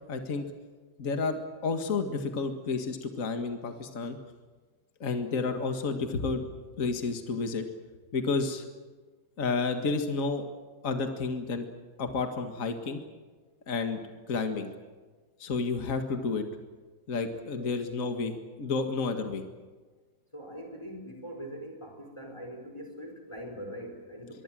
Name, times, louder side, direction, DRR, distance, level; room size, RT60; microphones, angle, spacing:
voice 1, 0.1-0.5 1.0-4.2 5.0-6.4 6.8-7.7 8.1-8.6 9.4-10.4 10.8-11.7 12.0-13.0 13.7-14.0 14.3-14.7 15.4-16.4 17.1-19.4, left 4 dB, 45° left, 6 dB, 2.2 m, -30 dB
voice 2, 20.3-24.4, equal, 15° left, 3 dB, 4.4 m, -42 dB
24.0 x 23.5 x 7.7 m, 1.4 s
omnidirectional pair, 2.0 m